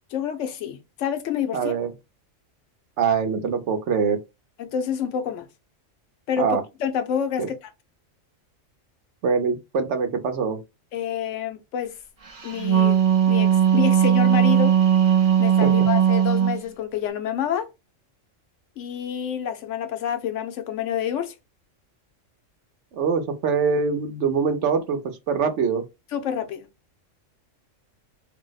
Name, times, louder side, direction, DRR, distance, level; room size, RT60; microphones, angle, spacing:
voice 1, 0.1-1.7 4.6-5.5 6.3-7.7 10.9-11.9 12.4-14.8 15.4-17.7 18.8-21.3 26.1-26.7, left 8 dB, 75° left, 0.9 m, -28 dB
voice 2, 1.5-1.9 3.0-4.2 6.4-6.6 7.4-7.5 9.2-10.6 15.6-15.7 22.9-25.0 25.3-25.8, right 5 dB, 65° right, 0.9 m, -23 dB
Wind instrument woodwind instrument, 12.4-16.6, right 9 dB, 45° right, 0.4 m, -18 dB
2.7 x 2.0 x 3.8 m
omnidirectional pair, 1.3 m